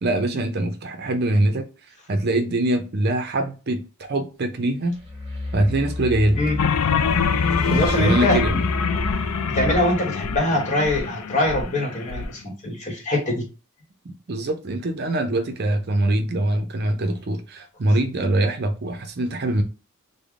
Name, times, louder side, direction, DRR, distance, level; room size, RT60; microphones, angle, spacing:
voice 1, 0.0-1.7 2.1-5.0 5.5-6.4 7.6-8.5 14.0-19.6, right 1 dB, 45° right, 0.6 m, -23 dB
sound 1, 5.0-9.9, left 2 dB, 25° right, 1.0 m, -29 dB
sound 2, 6.6-12.3, left 6 dB, 85° left, 0.4 m, -25 dB
voice 2, 7.7-8.6 9.5-13.4, left 1 dB, 35° left, 1.2 m, -23 dB
3.4 x 2.1 x 3.5 m
head